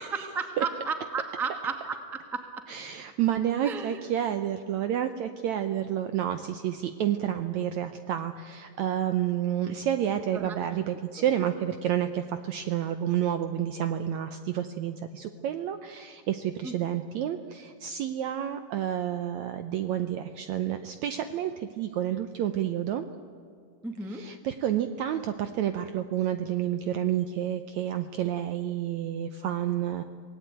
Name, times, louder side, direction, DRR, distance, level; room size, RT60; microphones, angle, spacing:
voice 1, 0.0-2.4 3.6-4.0 10.3-10.6 16.6-16.7 23.8-24.2, right 4 dB, ahead, 6 dB, 0.7 m, -33 dB
voice 2, 2.7-23.1 24.1-30.0, right 10 dB, 75° right, 9 dB, 1.7 m, -30 dB
26.5 x 18.5 x 9.2 m, 2.3 s
omnidirectional pair, 4.1 m